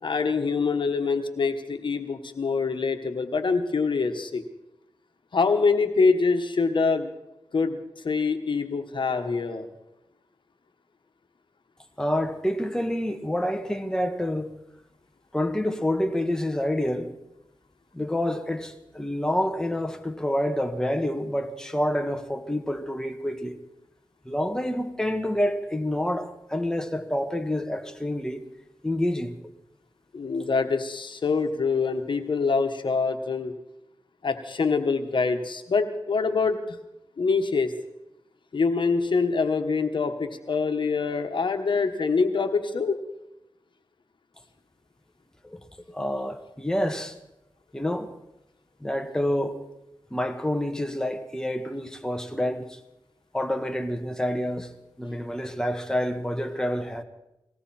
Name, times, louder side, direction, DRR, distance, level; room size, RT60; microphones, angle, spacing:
voice 1, 0.0-4.4 5.3-7.1 7.5-7.8 8.0-9.7 30.1-33.5 34.2-36.8 37.2-37.7 38.5-43.0, left 4 dB, 65° left, 1.3 m, -25 dB
voice 2, 12.0-14.5 15.3-17.1 17.9-23.6 24.2-28.4 28.8-29.3 45.4-45.6 45.9-47.1 47.7-48.1 48.8-49.6 50.1-52.8 53.3-54.7 55.0-57.0, left 1 dB, 5° left, 1.4 m, -28 dB
19.5 x 17.0 x 4.4 m
cardioid pair, 55°, 9 cm